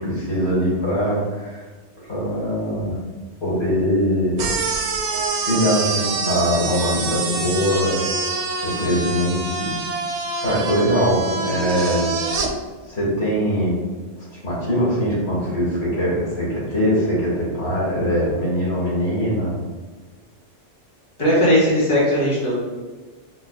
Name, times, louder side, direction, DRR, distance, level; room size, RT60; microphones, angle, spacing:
voice 1, 0.0-1.6 2.0-2.9 3.4-4.4 5.5-8.0 8.5-9.7 10.4-12.1 12.9-13.8 14.2-19.5, equal, 60° left, -7 dB, 1.6 m, -22 dB
sound 1, 4.4-12.5, right 4 dB, 75° right, 0.9 m, -26 dB
voice 2, 21.2-22.5, equal, 25° left, -7 dB, 1.3 m, -17 dB
3.9 x 3.3 x 2.2 m, 1.4 s
omnidirectional pair, 1.2 m